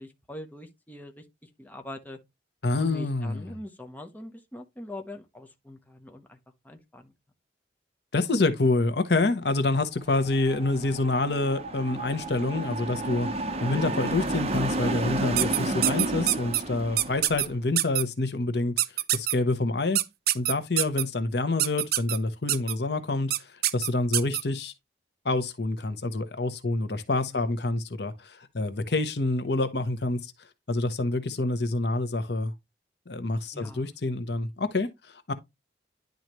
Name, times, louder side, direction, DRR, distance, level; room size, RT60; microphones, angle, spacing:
voice 1, 0.0-2.2 2.8-6.4 6.6-7.1 27.3-27.4 33.5-33.9, left 1 dB, 10° left, 0.9 m, -43 dB
voice 2, 2.6-3.4 8.1-18.7 19.1-20.0 20.3-24.7 25.2-30.3 30.7-32.5 33.1-35.3, left 2 dB, 65° left, 1.0 m, -27 dB
sound 1, 10.1-17.5, right 2 dB, 35° right, 0.9 m, -31 dB
sound 2, 15.4-16.6 17.0-17.5 17.8-18.0 18.8-19.3 20.0-21.0 21.6-22.2 22.5-22.7 23.3-23.4 23.6-24.4, right 14 dB, 55° right, 0.5 m, -24 dB
10.5 x 4.0 x 3.1 m
head